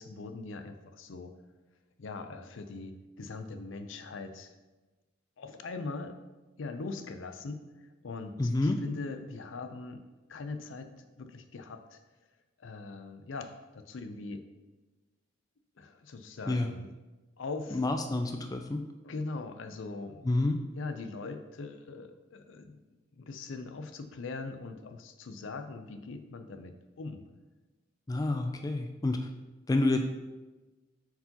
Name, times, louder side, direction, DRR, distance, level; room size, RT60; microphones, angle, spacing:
voice 1, 0.0-1.4 2.0-4.5 5.4-6.2 6.6-10.0 10.3-12.0 12.6-14.4 15.8-16.9 17.4-17.9 19.0-20.2 20.7-22.8 23.1-27.2, left 3 dB, 70° left, 7 dB, 0.5 m, -41 dB
voice 2, 8.4-8.8 16.5-16.7 17.7-18.8 20.2-20.6 28.1-29.3 29.7-30.0, left 2 dB, 20° left, 5 dB, 0.3 m, -28 dB
7.5 x 4.6 x 2.9 m, 1.2 s
head